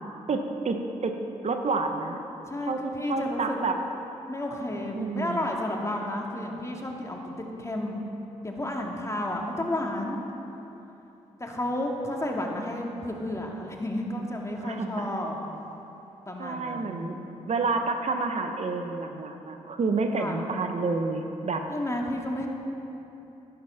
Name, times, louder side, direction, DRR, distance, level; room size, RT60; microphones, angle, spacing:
voice 1, 0.3-0.8 1.0-1.1 1.4-2.2 2.7-2.8 3.1-3.7 5.0-5.5 14.6-15.1 16.4-17.2 17.5-21.6, right 3 dB, 50° right, 5 dB, 1.1 m, -29 dB
voice 2, 2.5-3.6 4.3-7.2 7.6-8.0 8.4-10.2 11.4-15.4 16.3-17.1 20.2-20.4 21.7-22.5, left 1 dB, 20° left, 0 dB, 2.3 m, -31 dB
11.5 x 11.5 x 5.8 m, 3.0 s
supercardioid pair, 45°, 14 cm